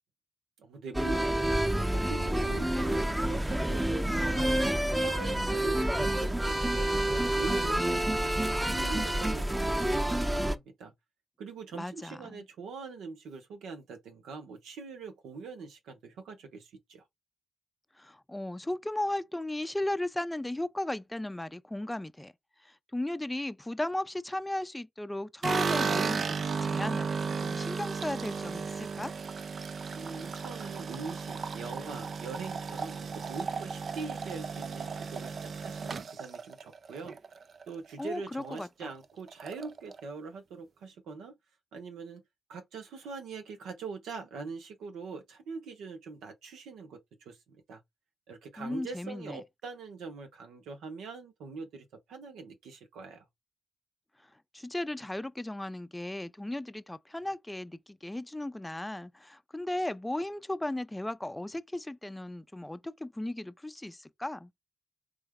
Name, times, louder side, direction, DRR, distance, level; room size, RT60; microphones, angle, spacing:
voice 1, 0.6-4.6 5.0-10.9 11.4-17.0 29.9-37.2 37.7-41.4 41.7-42.2 42.5-47.8 48.3-53.3, right 4 dB, 85° right, 0.9 m, -43 dB
sound 1, 0.9-10.6, right 1 dB, 15° right, 0.7 m, -28 dB
voice 2, 11.7-12.4 18.0-22.3 22.6-29.1 38.0-38.9 48.6-49.4 54.5-64.5, left 1 dB, 15° left, 0.5 m, -36 dB
sound 2, 25.4-37.7 38.0-38.6 38.9-39.0 39.3-40.0, right 5 dB, 65° right, 0.5 m, -34 dB
3.4 x 3.1 x 3.6 m
supercardioid pair, 45°, 0 cm